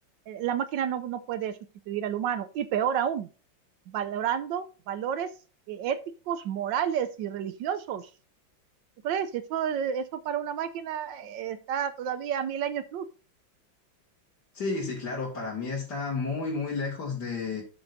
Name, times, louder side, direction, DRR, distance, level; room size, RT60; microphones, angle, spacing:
voice 1, 0.3-1.6 1.9-3.3 3.9-5.3 5.7-6.0 6.3-8.1 9.0-13.0, right 9 dB, 75° right, 12 dB, 1.3 m, -30 dB
voice 2, 14.5-17.6, left 4 dB, 60° left, -5 dB, 2.8 m, -31 dB
12.5 x 6.2 x 2.7 m, 0.35 s
omnidirectional pair, 2.1 m